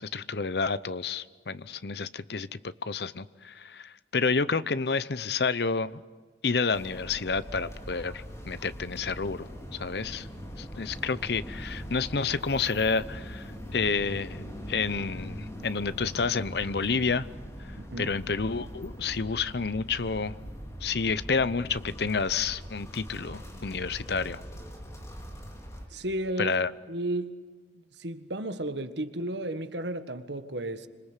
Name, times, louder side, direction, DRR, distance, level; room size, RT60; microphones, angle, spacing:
voice 1, 0.0-6.0 6.4-10.3 10.6-17.3 17.6-20.3 20.8-24.4 26.4-26.7, left 4 dB, 65° left, 0.8 m, -30 dB
sound 1, 6.7-25.8, equal, 15° left, 4.2 m, -42 dB
voice 2, 17.8-18.2 25.9-26.6 26.9-27.4 28.0-30.9, right 1 dB, 80° right, 1.6 m, -33 dB
26.5 x 26.0 x 8.2 m
head